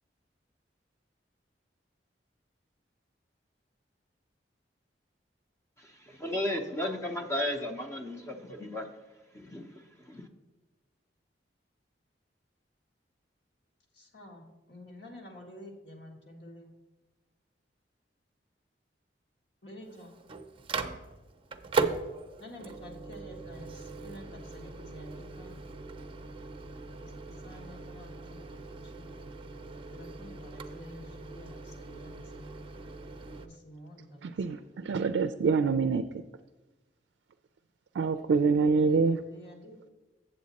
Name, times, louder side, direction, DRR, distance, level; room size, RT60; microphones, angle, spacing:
voice 1, 5.8-9.0 9.3-10.3, left 1 dB, 15° left, 4 dB, 0.6 m, -35 dB
voice 2, 13.9-16.7 19.6-20.1 22.4-25.6 27.0-29.3 29.9-32.6 33.3-34.6 38.8-39.9, left 1 dB, 70° left, 0 dB, 1.5 m, -50 dB
Microwave oven, 19.8-33.5, right 3 dB, 30° right, 0.5 m, -39 dB
voice 3, 34.2-36.0 37.9-39.2, right 4 dB, 85° right, 10 dB, 0.3 m, -26 dB
7.7 x 7.5 x 4.1 m, 1.1 s
head